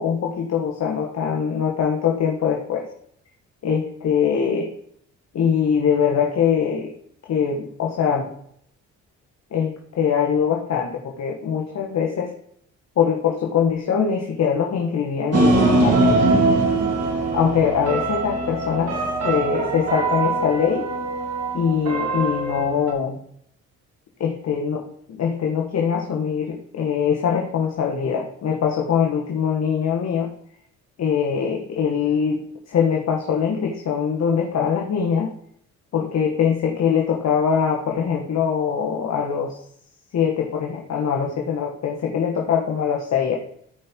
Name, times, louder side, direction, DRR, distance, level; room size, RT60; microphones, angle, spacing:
voice 1, 0.0-2.9 3.6-4.7 5.3-6.9 7.3-8.3 9.5-12.3 13.0-16.6 17.3-19.0 19.2-20.9 21.5-23.2 24.2-30.3 31.0-35.3 35.9-39.6 40.1-43.3, left 7 dB, 60° left, 0 dB, 1.7 m, -22 dB
sound 1, 15.3-22.9, right 2 dB, 55° right, 3.5 m, -22 dB
14.0 x 5.5 x 4.6 m, 0.67 s
cardioid pair, 90°, 30 cm